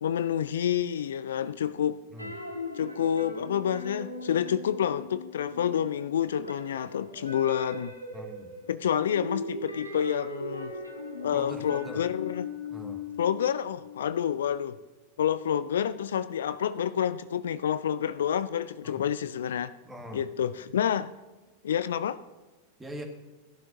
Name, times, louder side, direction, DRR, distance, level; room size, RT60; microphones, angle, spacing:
voice 1, 0.0-2.0 2.8-7.9 8.7-10.7 11.2-12.5 13.2-14.8 15.2-19.7 20.1-21.1 21.6-22.2, left 9 dB, 65° left, 0.4 m, -28 dB
sound 1, 2.2-5.9 6.2-14.0, left 3 dB, 90° right, 1.6 m, -39 dB
voice 2, 8.1-8.5 11.3-12.0 12.7-13.1 18.8-19.0 19.8-20.3 22.8-23.0, equal, 10° right, 1.8 m, -42 dB
Keyboard (musical), 10.6-13.1, right 5 dB, 40° right, 2.9 m, -52 dB
17.0 x 12.0 x 2.6 m
figure-of-eight pair, 90°, 0 cm